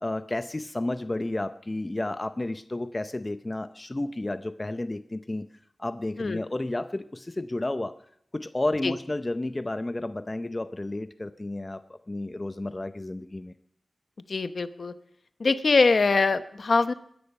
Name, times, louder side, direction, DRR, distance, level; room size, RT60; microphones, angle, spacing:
voice 1, 0.0-5.5 5.8-7.9 8.3-13.5, left 2 dB, 25° left, 10 dB, 0.6 m, -32 dB
voice 2, 14.3-14.9 15.4-16.9, left 4 dB, 60° left, 11 dB, 0.9 m, -23 dB
21.5 x 10.5 x 5.5 m, 0.69 s
wide cardioid pair, 70°, 0 cm